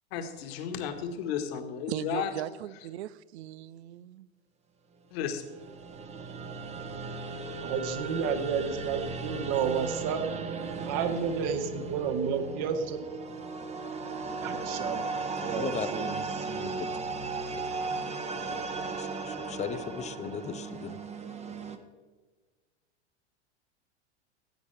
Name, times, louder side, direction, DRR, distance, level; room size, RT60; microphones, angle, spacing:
voice 1, 0.1-2.3 5.1-5.4, left 8 dB, 60° left, 1.7 m, -33 dB
voice 2, 1.9-4.3 11.2-11.4, right 13 dB, 70° right, 0.5 m, -38 dB
sound 1, 5.3-21.8, right 4 dB, 20° right, 1.0 m, -36 dB
voice 3, 7.6-10.2 10.8-13.0 14.4-15.0 15.5-16.8, right 7 dB, 50° right, 1.5 m, -31 dB
voice 4, 15.4-15.9 18.3-18.6 18.9-21.0, left 7 dB, 20° left, 0.7 m, -37 dB
15.5 x 8.4 x 3.4 m
hypercardioid pair, 100°, 34 cm